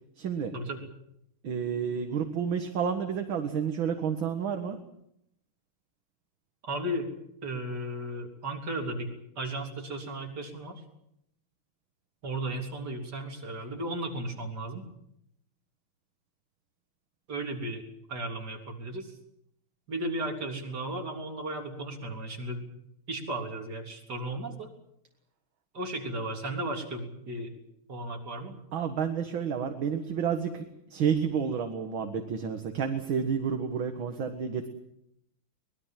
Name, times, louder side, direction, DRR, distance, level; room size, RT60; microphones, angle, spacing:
voice 1, 0.2-0.5 1.4-4.8 28.7-34.7, right 7 dB, 70° right, 6 dB, 2.3 m, -30 dB
voice 2, 6.6-7.1 7.4-10.8 12.2-14.9 17.3-19.2 19.9-22.7 23.1-24.7 25.7-27.5 27.9-28.6, right 1 dB, 50° right, 2 dB, 4.1 m, -35 dB
24.0 x 20.5 x 7.5 m, 0.76 s
omnidirectional pair, 2.3 m